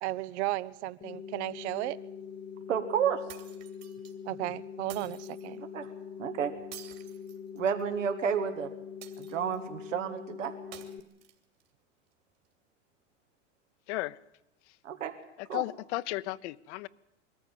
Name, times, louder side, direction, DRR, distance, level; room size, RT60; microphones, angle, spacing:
voice 1, 0.0-2.0 4.3-5.6, right 17 dB, 60° right, 0.8 m, -34 dB
sound 1, 1.0-11.0, left 7 dB, 25° left, 1.2 m, -43 dB
voice 2, 2.7-3.2 5.7-5.9 6.2-6.5 7.5-8.7 9.2-10.5 14.8-15.2 15.5-15.6, right 7 dB, 85° right, 1.9 m, -30 dB
sound 2, 3.3-4.1 4.9-5.5 6.7-7.9 9.0-9.7 10.7-11.7, right 11 dB, 45° right, 2.9 m, -50 dB
voice 3, 13.9-14.2 14.7-14.8 15.4-16.9, left 18 dB, 65° left, 0.8 m, -34 dB
22.0 x 14.0 x 9.1 m
hypercardioid pair, 105°, 37 cm